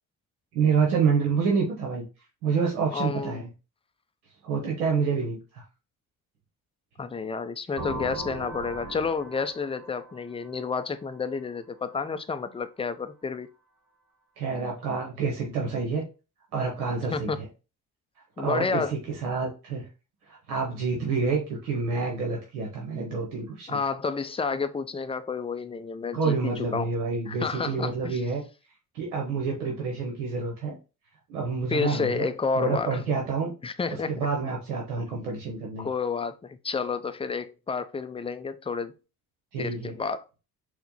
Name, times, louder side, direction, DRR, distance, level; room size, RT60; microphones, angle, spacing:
voice 1, 0.5-2.0 2.4-3.5 4.4-5.6 14.4-16.0 16.5-17.5 18.4-19.9 20.3-23.8 26.1-28.4 28.9-30.8 31.3-32.3 32.6-33.5 34.1-35.9 39.5-39.9, right 5 dB, 85° right, 0.8 m, -28 dB
voice 2, 2.9-3.4 7.0-13.5 17.1-17.5 18.4-18.9 23.7-26.9 27.3-28.2 31.7-33.0 33.6-34.3 35.8-38.9 39.6-40.3, left 5 dB, 15° left, 0.4 m, -30 dB
sound 1, 7.8-11.5, right 2 dB, 45° right, 1.3 m, -39 dB
4.3 x 2.1 x 4.0 m
hypercardioid pair, 45°, 43 cm